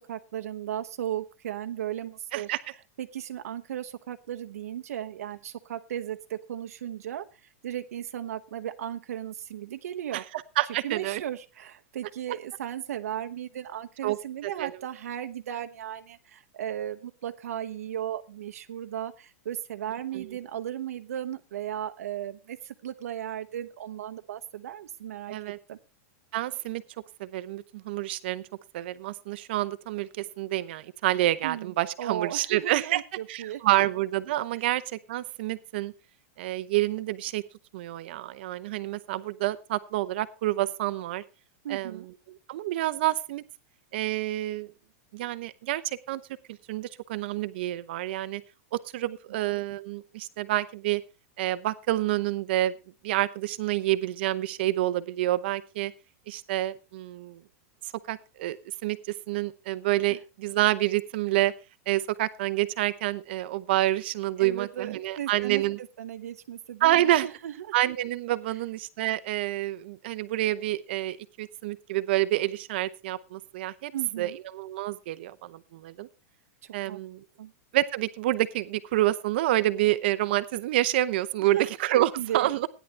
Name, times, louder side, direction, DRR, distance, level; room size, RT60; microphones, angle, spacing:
voice 1, 0.0-2.5 3.0-7.2 7.6-10.2 10.8-25.4 25.7-25.8 31.4-33.6 34.5-34.6 41.6-42.1 49.1-49.2 60.1-60.2 64.4-67.7 73.9-74.4 76.6-77.0 77.4-77.5 81.4-82.5, right 11 dB, 85° right, 7 dB, 0.9 m, -36 dB
voice 2, 10.6-11.2 14.0-14.2 14.4-14.7 20.1-20.2 25.3-25.6 26.3-26.8 27.2-28.4 28.7-33.0 33.3-35.9 36.4-37.4 37.7-41.2 41.7-42.1 42.5-43.4 43.9-44.7 45.1-46.2 46.7-48.4 48.9-51.0 51.4-52.7 53.0-55.9 56.3-57.4 58.1-58.6 58.8-61.5 61.9-65.8 66.8-67.3 67.7-73.9 74.2-76.1 76.7-77.2 77.7-82.7, right 15 dB, 45° right, 14 dB, 0.8 m, -28 dB
15.5 x 10.0 x 3.3 m, 0.29 s
supercardioid pair, 180°, 8 cm